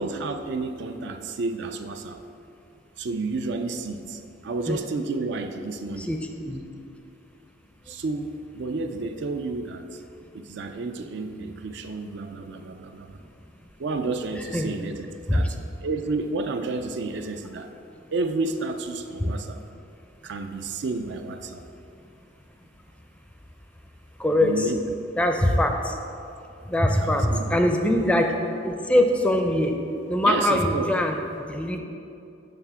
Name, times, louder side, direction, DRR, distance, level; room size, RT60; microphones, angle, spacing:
voice 1, 0.0-2.2 3.0-6.1 7.9-10.0 10.3-13.2 13.8-15.6 15.8-17.7 18.1-19.6 20.2-21.6 24.4-24.8 27.0-27.6 30.2-30.9, right 3 dB, 65° right, 6 dB, 0.4 m, -31 dB
voice 2, 24.2-24.7 25.2-25.7 26.7-29.7 30.1-31.2 31.5-31.8, left 1 dB, 5° left, 4 dB, 0.4 m, -22 dB
6.9 x 3.5 x 5.7 m, 2.6 s
head